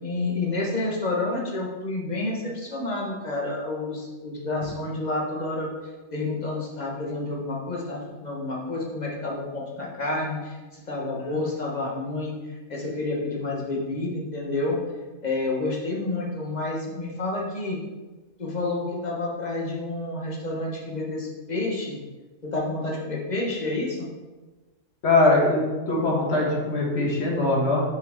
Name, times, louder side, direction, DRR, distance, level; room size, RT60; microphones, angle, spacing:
voice 1, 0.0-5.7 6.1-12.4 12.7-14.8 15.2-17.8 18.4-22.0 22.4-24.1, left 2 dB, 30° left, -3 dB, 1.3 m, -29 dB
voice 2, 25.0-25.6 25.9-27.8, left 2 dB, 50° left, -3 dB, 1.6 m, -21 dB
7.3 x 4.5 x 3.6 m, 1.2 s
omnidirectional pair, 1.5 m